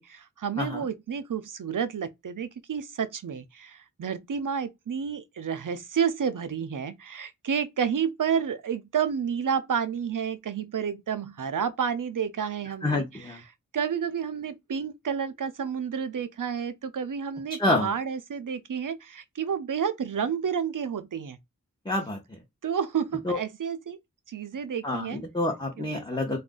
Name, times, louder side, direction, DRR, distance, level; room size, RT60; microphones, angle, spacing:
voice 1, 0.0-13.4 13.7-21.4 22.6-24.0 24.3-25.2 25.8-26.0, right 7 dB, 80° right, 0.5 m, -30 dB
voice 2, 12.8-13.4 17.6-17.9 21.9-22.2 23.3-23.4 24.8-26.4, left 2 dB, 15° left, 0.8 m, -27 dB
2.5 x 2.1 x 3.7 m
wide cardioid pair, 45°, 32 cm